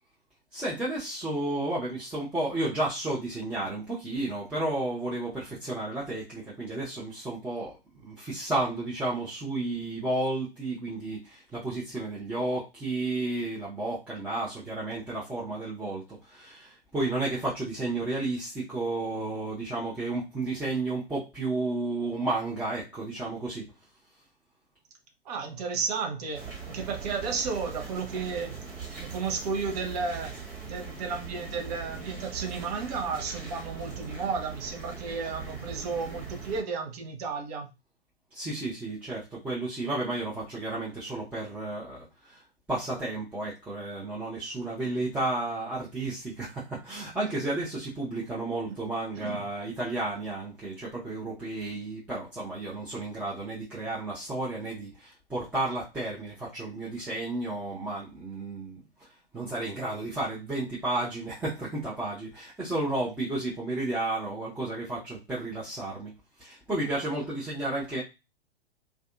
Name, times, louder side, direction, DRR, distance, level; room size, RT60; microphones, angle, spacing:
voice 1, 0.5-23.7 38.3-42.4 42.7-58.8 59.3-66.1 66.4-68.0, right 2 dB, 5° right, -9 dB, 0.6 m, -32 dB
voice 2, 25.3-28.6 29.0-30.3 30.7-37.7 48.7-48.8 49.1-49.4, right 5 dB, 40° right, 4 dB, 0.7 m, -33 dB
sound 1, 26.3-36.6, right 5 dB, 60° right, 1.3 m, -41 dB
2.5 x 2.3 x 2.5 m, 0.25 s
figure-of-eight pair, 110°, 31 cm